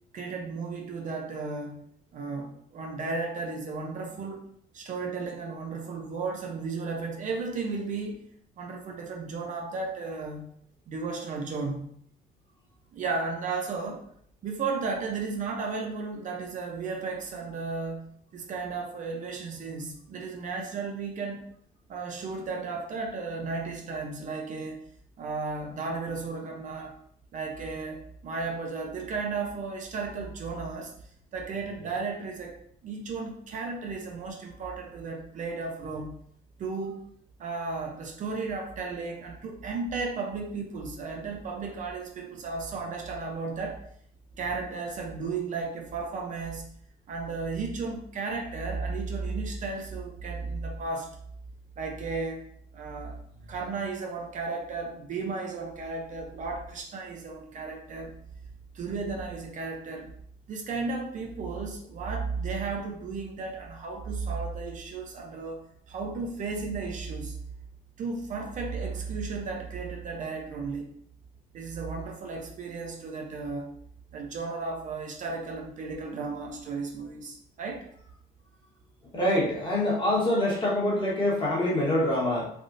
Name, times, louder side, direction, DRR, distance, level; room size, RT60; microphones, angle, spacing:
voice 1, 0.1-1.8 2.1-4.4 4.7-8.2 8.6-10.5 10.9-11.9 12.9-14.0 14.4-18.0 18.3-21.4 21.9-24.8 25.2-27.0 27.3-30.9 31.3-36.2 36.6-37.0 37.4-43.8 44.4-46.6 47.1-51.1 51.8-52.5 52.7-53.2 53.5-58.1 58.7-60.1 60.5-65.6 65.9-67.4 68.0-70.9 71.5-73.7 74.1-77.9, right 4 dB, 50° right, 2 dB, 0.6 m, -34 dB
voice 2, 79.1-82.5, left 1 dB, 30° left, -4 dB, 1.2 m, -25 dB
3.4 x 2.4 x 2.5 m, 0.66 s
cardioid pair, 110°, 17 cm